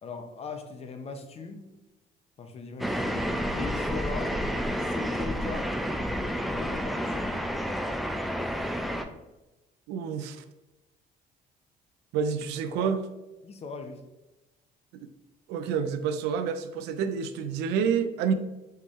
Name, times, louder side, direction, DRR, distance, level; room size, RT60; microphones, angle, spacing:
voice 1, 0.0-1.7 2.4-4.3 4.8-5.7 6.4-7.4 12.7-12.9 13.4-14.0, left 4 dB, 35° left, 6 dB, 0.6 m, -40 dB
sound 1, 2.8-9.0, equal, ahead, 0.3 m, -30 dB
voice 2, 9.9-10.4 12.1-13.0 15.5-18.3, right 7 dB, 90° right, 10 dB, 0.4 m, -28 dB
4.4 x 3.5 x 3.1 m, 1.0 s
cardioid pair, 110°, 17 cm